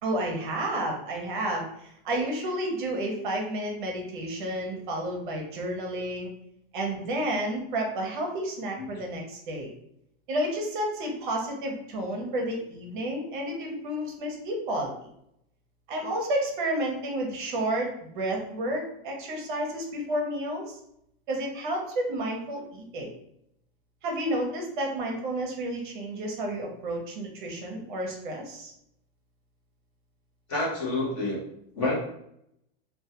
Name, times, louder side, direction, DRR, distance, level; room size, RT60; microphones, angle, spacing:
voice 1, 0.0-6.3 6.7-9.7 10.3-14.9 15.9-17.9 18.1-20.7 21.3-23.1 24.0-28.7, right 1 dB, 55° right, 1 dB, 0.6 m, -31 dB
voice 2, 30.5-31.4 31.8-32.0, left 2 dB, 30° left, -5 dB, 0.7 m, -28 dB
2.2 x 2.2 x 2.8 m, 0.76 s
supercardioid pair, 175°, 31 cm